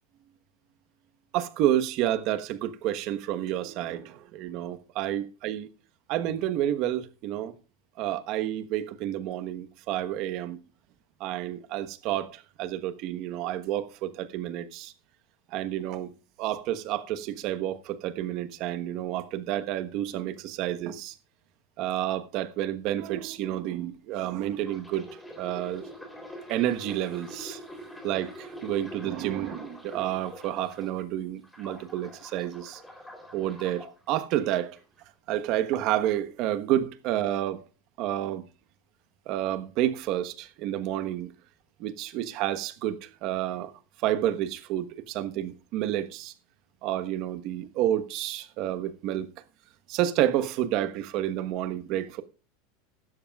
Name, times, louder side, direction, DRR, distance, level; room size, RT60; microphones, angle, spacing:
voice 1, 1.3-5.7 6.1-7.5 8.0-10.6 11.2-14.9 15.5-16.1 16.4-21.2 21.8-25.0 25.4-25.8 26.5-27.6 28.0-32.8 33.3-34.8 35.3-37.7 38.0-38.4 39.3-41.3 41.8-43.7 44.0-46.3 46.8-49.3 49.9-52.2, right 12 dB, 50° right, 1.2 m, -30 dB
sound 1, 24.5-31.0 31.4-33.9 34.6-34.8, equal, 5° left, 3.4 m, -44 dB
16.5 x 13.0 x 2.4 m
supercardioid pair, 145°, 0 cm